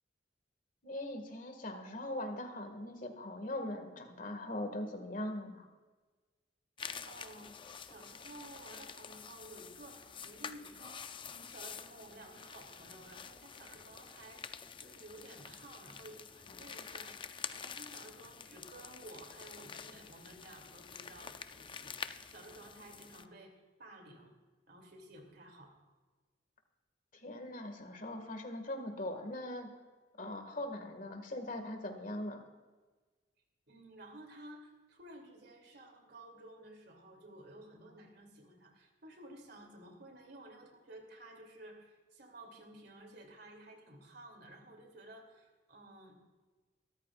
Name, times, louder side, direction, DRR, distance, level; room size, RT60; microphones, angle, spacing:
voice 1, 0.8-5.7 27.1-29.7 30.2-32.4, left 1 dB, 50° left, 5 dB, 1.9 m, -41 dB
sound 1, 6.8-23.3, left 6 dB, 30° left, 0.5 m, -48 dB
voice 2, 7.0-7.5 7.8-24.3 24.7-25.7 33.7-46.2, right 1 dB, 65° right, 2 dB, 2.9 m, -54 dB
23.5 x 13.5 x 2.5 m, 1.3 s
head